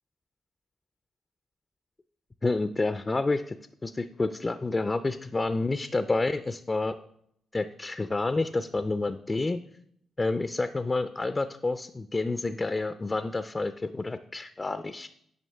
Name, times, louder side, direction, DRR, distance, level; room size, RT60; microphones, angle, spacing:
voice 1, 2.4-3.6 3.8-7.0 7.5-9.6 10.2-15.1, left 3 dB, 30° left, 11 dB, 0.4 m, -29 dB
9.2 x 5.3 x 3.4 m, 0.73 s
supercardioid pair, 45°, 0 cm